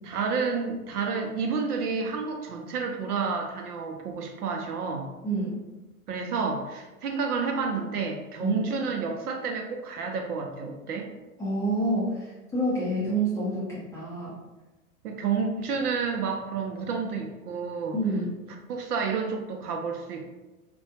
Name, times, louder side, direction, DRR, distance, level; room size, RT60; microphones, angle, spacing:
voice 1, 0.1-5.1 6.1-11.1 15.0-18.0 18.7-20.3, right 5 dB, 75° right, 2 dB, 0.6 m, -30 dB
voice 2, 5.2-5.6 8.4-8.6 11.4-14.3 17.9-18.3, right 1 dB, 5° left, -9 dB, 0.4 m, -28 dB
2.4 x 2.2 x 2.8 m, 1.1 s
hypercardioid pair, 100°, 45 cm